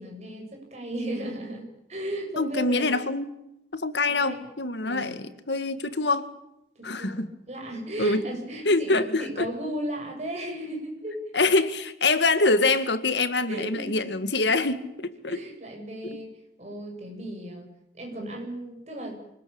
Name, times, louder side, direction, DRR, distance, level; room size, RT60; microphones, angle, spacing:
voice 1, 0.0-3.0 4.3-4.4 4.8-5.2 6.8-11.2 13.5-14.0 14.6-14.7 15.3-16.3 16.6-17.7 17.9-19.2, right 1 dB, 35° right, 2 dB, 7.7 m, -35 dB
voice 2, 2.4-3.3 3.7-6.3 6.8-7.3 8.0-8.2 8.7-9.5 11.3-15.4, left 3 dB, 75° left, 11 dB, 1.9 m, -25 dB
25.0 x 20.0 x 8.8 m, 0.84 s
head